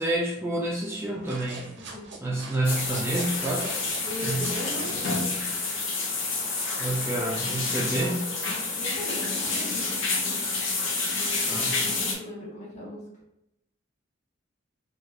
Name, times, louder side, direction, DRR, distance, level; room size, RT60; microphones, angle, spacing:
voice 1, 0.0-1.7 2.2-3.9 4.2-4.5 6.8-8.3 11.5-11.9, right 1 dB, 10° right, -3 dB, 0.3 m, -29 dB
sound 1, 1.1-5.3, right 3 dB, 60° right, 0.6 m, -42 dB
voice 2, 1.8-2.1 4.0-5.3 8.7-9.9 11.9-13.0, equal, 35° left, -4 dB, 1.0 m, -38 dB
sound 2, 2.6-12.1, left 3 dB, 70° left, 0.7 m, -29 dB
3.1 x 2.3 x 3.1 m, 0.82 s
head